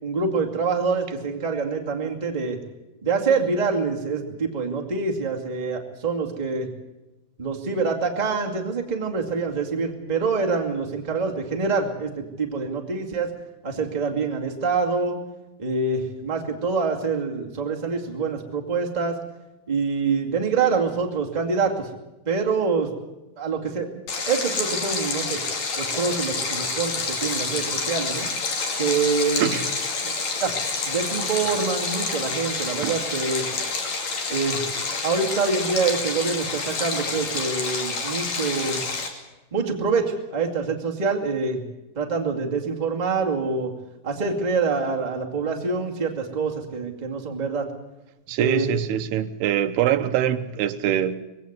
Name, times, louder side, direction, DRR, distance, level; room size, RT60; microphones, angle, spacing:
voice 1, 0.0-2.6 3.0-6.7 7.4-13.3 13.6-15.2 15.6-19.2 19.7-21.9 22.2-22.9 23.4-23.9 24.3-25.4 25.8-28.3 28.8-29.6 30.0-30.1 30.4-30.5 30.8-33.4 34.3-34.6 35.0-38.8 39.5-41.7 41.9-43.7 44.0-47.7 48.4-48.7, right 4 dB, 15° right, 1.6 m, -25 dB
Stream, 24.1-39.1, left 4 dB, 45° left, 3.7 m, -28 dB
voice 2, 48.3-51.2, right 10 dB, 85° right, 3.0 m, -23 dB
21.0 x 16.5 x 8.1 m
omnidirectional pair, 4.5 m